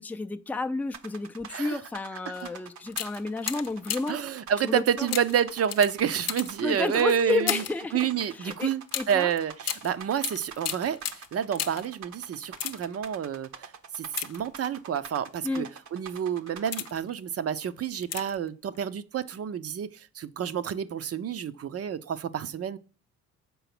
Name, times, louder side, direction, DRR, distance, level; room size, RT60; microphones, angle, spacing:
voice 1, 0.0-4.2 4.6-5.1 6.6-9.3 15.4-15.7, left 3 dB, 5° left, 0.5 m, -31 dB
sound 1, 0.9-17.0, right 7 dB, 70° right, 1.0 m, -45 dB
sound 2, 2.3-2.5 2.9-4.3 5.1-7.9 8.9-12.0 12.4-13.1 14.0-14.9 15.6-15.8 16.3-17.1 18.0-18.5 18.7-18.8, left 9 dB, 55° left, 0.7 m, -35 dB
voice 2, 4.1-7.6 7.9-13.7 14.0-15.7 15.9-22.8, right 8 dB, 50° right, 0.7 m, -29 dB
7.0 x 4.7 x 6.0 m
cardioid pair, 90°, 30 cm